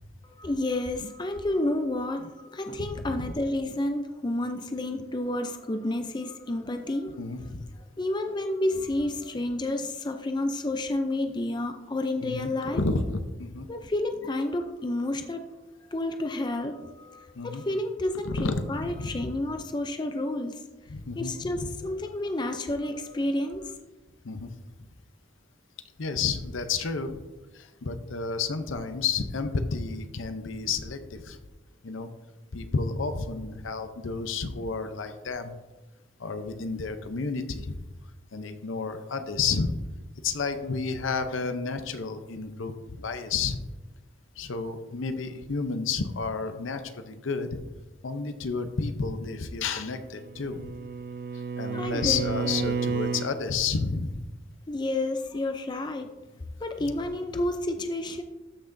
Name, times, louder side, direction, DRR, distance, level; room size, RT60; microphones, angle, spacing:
voice 1, 0.2-7.2 8.0-12.8 13.7-15.5 15.9-20.6 21.1-23.7 51.7-52.7 54.7-56.1 56.6-58.2, left 1 dB, 20° left, 6 dB, 0.4 m, -30 dB
voice 2, 2.8-3.3 7.2-7.6 12.2-13.7 17.4-17.6 18.2-19.3 20.9-21.7 24.2-24.5 26.0-27.2 27.5-31.4 31.8-32.1 32.5-35.6 36.2-37.7 38.3-39.8 40.2-43.6 44.4-47.5 48.0-50.7 51.6-54.2 56.8-56.9, left 4 dB, 75° left, 9 dB, 0.7 m, -31 dB
Bowed string instrument, 50.0-53.4, right 5 dB, 50° right, 0.4 m, -31 dB
13.0 x 5.8 x 2.6 m, 1.1 s
head